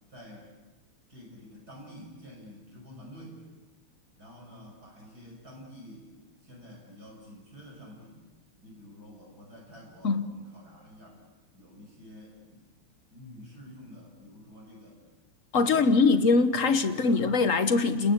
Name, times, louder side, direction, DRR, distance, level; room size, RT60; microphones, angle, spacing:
voice 1, 0.1-0.5 1.1-3.4 4.2-6.1 6.4-8.2 8.6-11.2 11.5-12.7 13.1-15.0 15.5-16.2 16.7-17.3, equal, 45° right, 6.2 m, -49 dB
voice 2, 15.5-18.1, left 4 dB, 45° left, 1.2 m, -22 dB
30.0 x 20.0 x 8.4 m
omnidirectional pair, 2.4 m